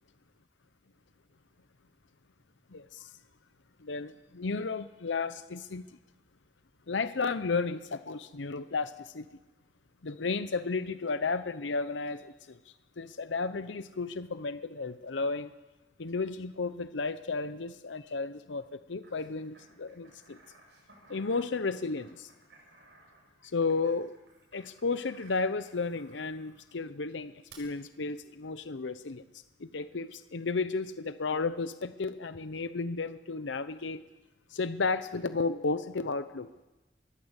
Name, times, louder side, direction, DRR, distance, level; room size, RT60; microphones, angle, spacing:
voice 1, 2.7-3.1 3.8-6.0 6.9-9.3 10.0-12.6 13.0-15.5 16.0-20.4 21.1-22.3 23.4-24.1 24.5-29.2 29.6-34.0 34.5-36.5, left 4 dB, 75° left, 12 dB, 0.7 m, -33 dB
sound 1, 19.0-26.7 27.5-27.6, right 3 dB, 65° right, 7.7 m, -59 dB
22.5 x 20.5 x 8.2 m, 1.1 s
head